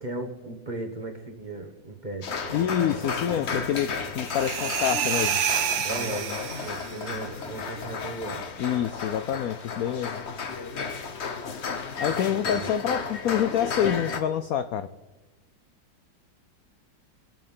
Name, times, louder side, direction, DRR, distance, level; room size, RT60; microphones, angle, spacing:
voice 1, 0.0-2.7 5.8-8.5 12.2-12.7, right 2 dB, 30° right, 2 dB, 1.0 m, -37 dB
sound 1, 2.2-14.2, left 5 dB, 45° left, 1.0 m, -33 dB
voice 2, 2.5-5.4 5.8-5.9 8.6-10.2 12.0-14.9, left 9 dB, 75° left, 12 dB, 0.8 m, -27 dB
sound 2, 4.3-7.0, right 8 dB, 75° right, 1.5 m, -28 dB
22.5 x 7.6 x 5.5 m, 1.1 s
omnidirectional pair, 2.0 m